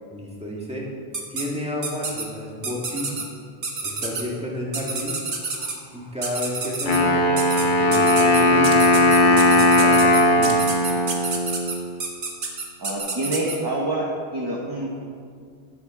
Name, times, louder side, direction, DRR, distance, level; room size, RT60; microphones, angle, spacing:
voice 1, 0.1-0.9 1.3-3.3 3.8-5.2 5.9-10.6, left 1 dB, 5° right, -4 dB, 1.7 m, -31 dB
sound 1, 1.1-1.4 1.8-2.2 2.6-3.2 3.6-4.2 4.7-5.7 6.2-7.0 7.4-7.6 7.9-13.6, right 4 dB, 50° right, 1.3 m, -28 dB
Wind instrument woodwind instrument, 6.9-11.8, left 1 dB, 50° left, 1.2 m, -18 dB
voice 2, 12.8-14.0 14.3-14.9, right 2 dB, 25° right, -3 dB, 1.0 m, -26 dB
12.5 x 7.6 x 3.8 m, 2.2 s
omnidirectional pair, 1.1 m